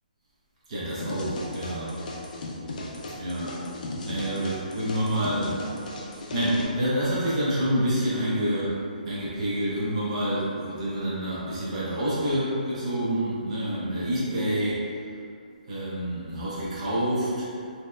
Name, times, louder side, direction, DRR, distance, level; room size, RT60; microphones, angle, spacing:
voice 1, 0.7-2.1 3.1-3.6 4.0-5.6 6.1-8.8 9.1-14.8 15.7-17.5, equal, 45° right, -8 dB, 0.6 m, -27 dB
sound 1, 1.0-6.6, left 2 dB, 60° left, 0.4 m, -36 dB
2.7 x 2.0 x 2.2 m, 2.4 s
hypercardioid pair, 155°, 5 cm